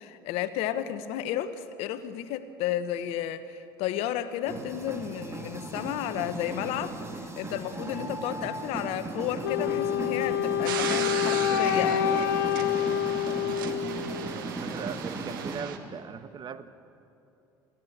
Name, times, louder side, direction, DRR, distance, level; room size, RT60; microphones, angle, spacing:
voice 1, 0.0-12.1, left 11 dB, 70° left, 12 dB, 1.1 m, -32 dB
sound 1, 4.5-15.6, right 2 dB, 25° right, 2.8 m, -37 dB
Wind instrument woodwind instrument, 9.4-14.5, left 11 dB, 85° left, 0.7 m, -27 dB
sound 2, 10.6-15.8, right 8 dB, 85° right, 1.4 m, -37 dB
voice 2, 13.8-16.7, right 7 dB, 45° right, 12 dB, 1.2 m, -40 dB
21.5 x 15.0 x 8.6 m, 2.8 s
hypercardioid pair, 70°, 11 cm